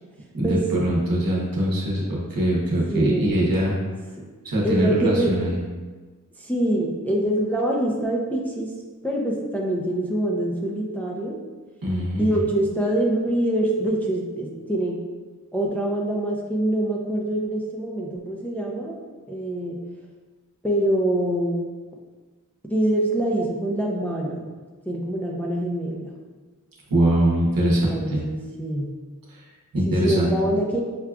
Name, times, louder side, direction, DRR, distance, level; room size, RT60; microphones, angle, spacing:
voice 1, 0.3-3.7 4.4-5.6 11.8-12.4 26.9-28.2 29.3-29.4 29.7-30.3, right 1 dB, 85° right, -4 dB, 0.9 m, -22 dB
voice 2, 2.9-3.4 4.6-5.3 6.4-8.7 9.0-11.4 12.2-15.0 15.5-19.0 19.3-19.8 20.6-21.6 22.7-24.5 24.9-26.1 27.6-28.9 29.9-30.8, right 1 dB, 5° left, -2 dB, 0.5 m, -25 dB
6.0 x 2.3 x 2.3 m, 1.3 s
wide cardioid pair, 80°, 33 cm